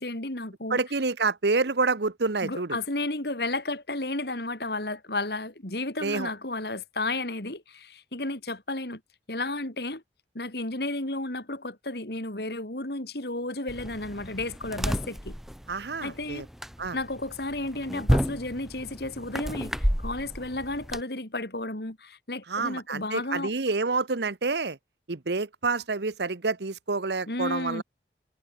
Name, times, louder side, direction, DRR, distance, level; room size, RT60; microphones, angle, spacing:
voice 1, 0.0-0.8 2.4-9.0 9.3-10.0 10.3-15.4 16.0-16.5 16.9-23.5 27.3-27.8, left 2 dB, 65° left, 3.3 m, -33 dB
voice 2, 0.7-2.8 6.0-6.3 15.7-16.5 16.8-17.0 22.5-24.8 25.1-27.8, right 3 dB, 70° right, 1.0 m, -28 dB
sound 1, 13.7-21.0, equal, ahead, 1.0 m, -31 dB
head